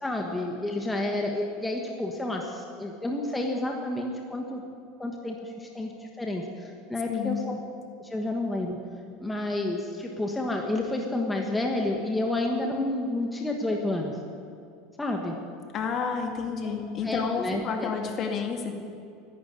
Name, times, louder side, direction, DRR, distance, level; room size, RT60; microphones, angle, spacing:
voice 1, 0.0-4.6 5.0-5.9 6.2-7.6 8.0-8.8 9.2-14.1 15.0-15.3 16.6-16.7 17.0-17.9, left 2 dB, 10° left, 1 dB, 1.5 m, -30 dB
voice 2, 15.7-18.7, left 6 dB, 35° left, 4 dB, 2.0 m, -30 dB
13.5 x 11.5 x 9.5 m, 2.4 s
supercardioid pair, 135°, 0 cm